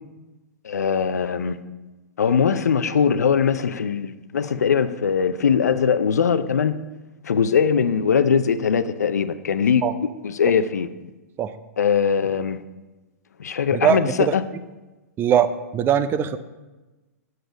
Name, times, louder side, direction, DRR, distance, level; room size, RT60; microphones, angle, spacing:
voice 1, 0.6-1.6 2.2-6.8 7.2-10.9 11.8-12.6 13.4-14.4, left 6 dB, 85° left, 12 dB, 0.6 m, -21 dB
voice 2, 13.7-14.3 15.2-16.4, right 9 dB, 25° right, 13 dB, 0.6 m, -21 dB
8.1 x 7.6 x 5.1 m, 1.2 s
hypercardioid pair, 120°, 9 cm